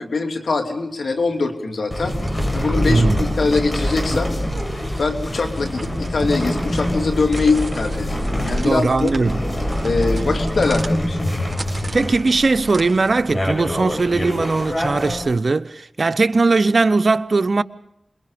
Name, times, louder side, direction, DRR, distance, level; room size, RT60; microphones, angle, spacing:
voice 1, 0.0-2.1 2.5-4.3 5.0-9.1 9.8-11.3, left 3 dB, 85° left, 3.1 m, -22 dB
sound 1, 1.9-15.2, equal, 35° left, 7.6 m, -24 dB
sound 2, 2.1-13.3, right 3 dB, 45° right, 4.0 m, -40 dB
voice 2, 2.8-3.3 8.6-9.4 11.9-17.6, right 3 dB, 65° right, 1.0 m, -19 dB
27.0 x 22.0 x 5.3 m
cardioid pair, 40°, 0 cm